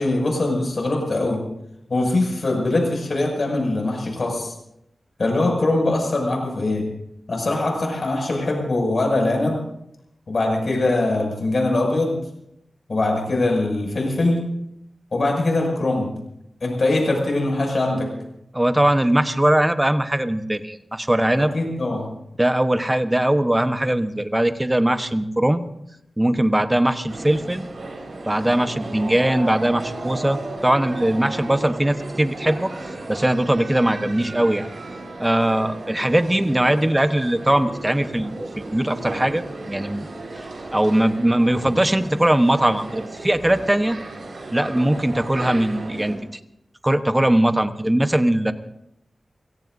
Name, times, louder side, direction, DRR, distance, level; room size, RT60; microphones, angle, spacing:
voice 1, 0.0-1.4 1.9-4.5 5.2-6.8 7.3-9.6 10.3-12.2 12.9-14.4 15.1-16.1 16.6-18.1 21.4-22.1, left 2 dB, 55° left, 1 dB, 6.5 m, -22 dB
voice 2, 18.5-21.5 22.4-25.6 26.2-27.7 28.2-32.7 33.1-34.7 35.2-40.4 40.7-44.0 44.5-46.3 46.8-48.5, right 1 dB, 15° right, 9 dB, 1.1 m, -20 dB
sound 1, 27.1-46.2, right 2 dB, 70° right, 4.6 m, -35 dB
30.0 x 17.5 x 2.7 m, 0.79 s
wide cardioid pair, 85°, 0 cm